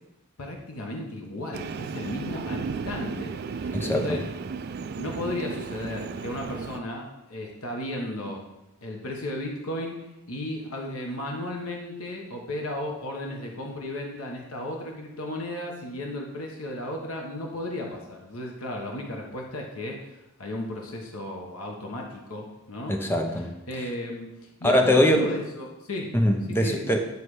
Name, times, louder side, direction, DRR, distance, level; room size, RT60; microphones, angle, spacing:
voice 1, 0.4-4.2 5.0-8.4 8.8-10.0 10.3-20.1 20.4-23.0 23.7-24.3 24.6-26.1 26.5-27.0, left 1 dB, 75° left, 0 dB, 1.1 m, -34 dB
Train, 1.5-6.8, right 5 dB, 45° right, 0.3 m, -34 dB
voice 2, 3.7-4.2 22.9-23.5 24.6-25.3 26.1-27.0, left 1 dB, 10° left, 4 dB, 0.6 m, -22 dB
9.4 x 3.2 x 4.8 m, 0.95 s
head